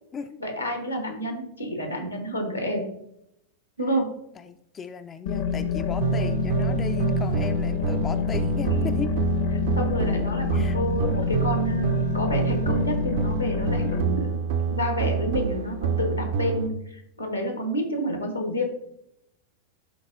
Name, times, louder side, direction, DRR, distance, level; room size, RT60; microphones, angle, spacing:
voice 1, 0.4-2.9 3.8-4.2 9.8-14.4 14.7-18.6, equal, 85° left, 5 dB, 1.2 m, -29 dB
voice 2, 4.4-9.1 10.5-10.8, left 6 dB, 25° left, 9 dB, 0.3 m, -35 dB
sound 1, 5.3-14.0, left 6 dB, 50° left, 0.7 m, -27 dB
sound 2, 6.0-16.7, right 6 dB, 55° right, 0.5 m, -27 dB
11.0 x 4.0 x 2.6 m, 0.77 s
figure-of-eight pair, 90°, 0 cm